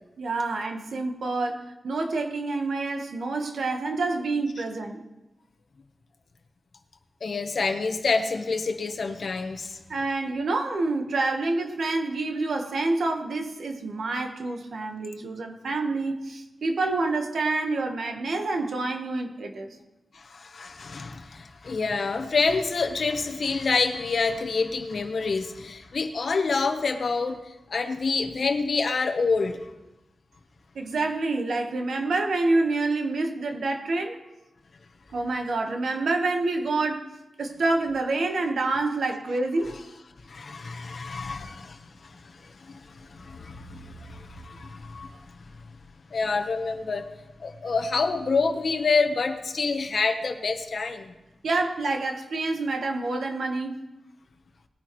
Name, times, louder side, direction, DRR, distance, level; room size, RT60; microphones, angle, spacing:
voice 1, 0.2-5.0 9.9-19.7 30.7-34.2 35.1-37.1 37.4-39.8 51.4-53.8, right 3 dB, 75° right, 1.3 m, -27 dB
voice 2, 7.2-9.8 20.1-29.6 40.3-45.1 46.1-47.1 47.4-51.1, left 4 dB, 55° left, 1.1 m, -27 dB
20.0 x 10.0 x 3.1 m
wide cardioid pair, 145°, 0 cm